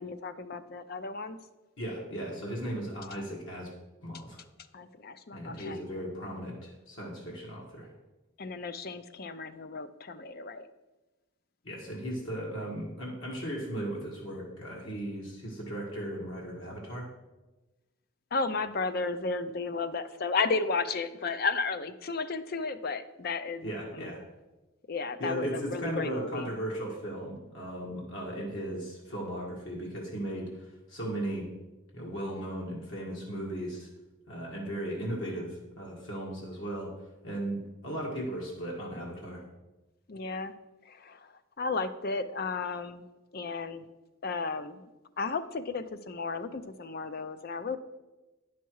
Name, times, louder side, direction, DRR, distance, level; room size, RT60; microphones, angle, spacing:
voice 1, 0.0-1.4 4.7-5.8 8.4-10.7 18.3-23.6 23.9-24.1 24.9-26.5 40.1-40.5 40.8-43.0 43.3-43.9 44.2-44.8 45.2-47.8, left 4 dB, 45° left, 11 dB, 0.5 m, -33 dB
voice 2, 1.8-3.7 4.0-4.4 5.3-7.9 11.6-17.1 23.6-24.2 25.2-31.5 31.9-33.9 34.3-36.9 37.2-39.4, right 1 dB, 65° left, -3 dB, 1.7 m, -36 dB
10.0 x 5.9 x 4.7 m, 1.1 s
head